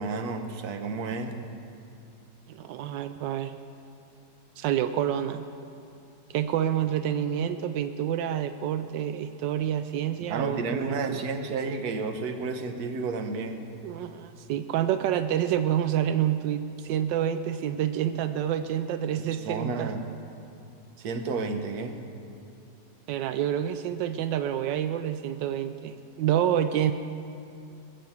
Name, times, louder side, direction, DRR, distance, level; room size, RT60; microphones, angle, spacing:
voice 1, 0.0-1.4 10.3-13.7 19.3-20.1 21.0-22.0, right 4 dB, 65° right, 6 dB, 1.4 m, -31 dB
voice 2, 2.5-3.5 4.6-5.5 6.3-11.2 13.8-19.9 23.1-26.9, right 10 dB, 85° right, 10 dB, 1.3 m, -28 dB
20.5 x 7.5 x 7.1 m, 2.6 s
omnidirectional pair, 1.9 m